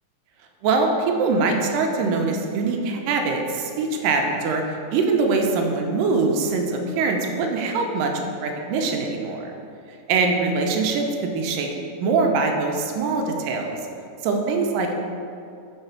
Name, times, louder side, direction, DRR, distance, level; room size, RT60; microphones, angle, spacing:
voice 1, 0.6-8.1 8.4-9.5 10.1-11.7 12.0-13.8 14.2-15.0, right 4 dB, 85° right, 2 dB, 2.3 m, -23 dB
6.6 x 4.9 x 5.9 m, 2.6 s
omnidirectional pair, 3.9 m